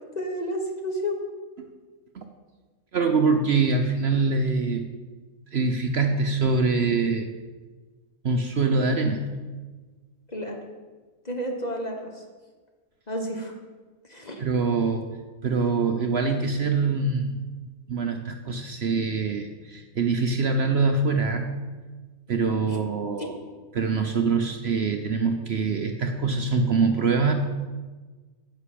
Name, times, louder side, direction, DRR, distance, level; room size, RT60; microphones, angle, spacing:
voice 1, 0.1-1.2 10.3-10.6 11.2-12.2 13.1-13.5 14.1-14.4 22.7-22.8 23.2-23.3, equal, 30° left, 2 dB, 1.4 m, -31 dB
voice 2, 2.9-4.8 5.5-7.3 8.2-9.2 14.4-15.1 15.4-17.3 17.9-21.6 22.3-23.4 23.7-27.3, right 4 dB, 55° right, 5 dB, 0.9 m, -24 dB
9.6 x 6.8 x 8.7 m, 1.4 s
omnidirectional pair, 1.5 m